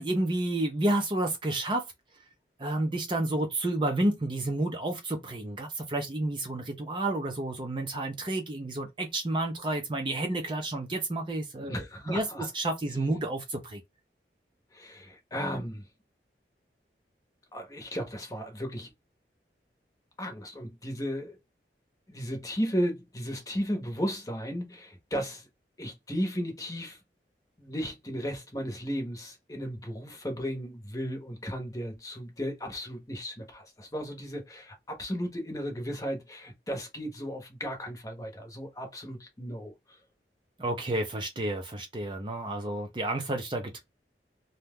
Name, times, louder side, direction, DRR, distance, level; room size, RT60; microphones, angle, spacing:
voice 1, 0.0-1.8 2.6-13.8 40.6-43.8, right 1 dB, 25° right, 0.5 m, -30 dB
voice 2, 11.7-12.5 14.7-15.9 17.5-18.9 20.2-21.4 22.1-25.5 25.8-27.0 27.6-40.0, equal, 20° left, 0.8 m, -35 dB
2.8 x 2.2 x 3.4 m
head